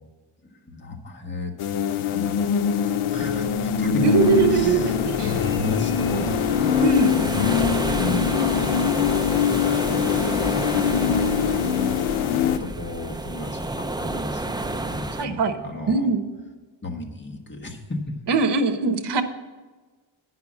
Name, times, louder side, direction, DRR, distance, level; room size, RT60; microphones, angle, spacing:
voice 1, 0.5-1.5 1.9-4.0 4.4-9.5 11.0-11.2 12.1-16.1 16.8-18.0, left 2 dB, 25° left, 0 dB, 1.4 m, -34 dB
sound 1, 1.6-12.6, left 7 dB, 85° left, 0.7 m, -23 dB
voice 2, 4.0-5.3 6.8-7.1 15.2-15.5 15.9-16.2 18.3-19.2, right 4 dB, 55° right, 8 dB, 1.0 m, -21 dB
sound 2, 4.2-15.3, right 2 dB, 10° right, 0.4 m, -31 dB
9.6 x 5.8 x 7.3 m, 1.3 s
wide cardioid pair, 110°, 48 cm